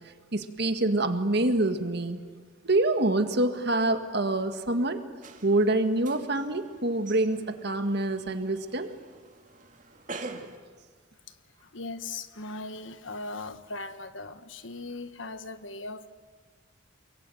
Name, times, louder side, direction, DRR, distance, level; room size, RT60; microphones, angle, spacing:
voice 1, 0.3-2.2 2.6-5.0 5.4-8.9, right 2 dB, 55° right, 1.8 m, -26 dB
sound 1, 5.2-10.6, right 3 dB, 40° right, 2.5 m, -45 dB
voice 2, 11.6-16.1, left 3 dB, 75° left, 1.5 m, -39 dB
28.0 x 22.5 x 9.3 m
head